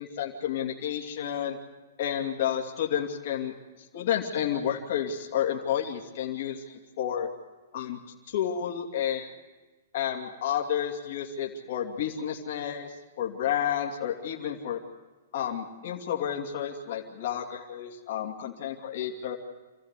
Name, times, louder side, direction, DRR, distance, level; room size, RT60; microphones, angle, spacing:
voice 1, 0.0-1.6 2.0-3.5 3.9-7.3 7.7-8.0 8.3-9.2 9.9-14.8 15.3-19.4, left 9 dB, 60° left, 1 dB, 2.6 m, -31 dB
27.5 x 14.5 x 8.3 m, 1.2 s
hypercardioid pair, 130°, 0 cm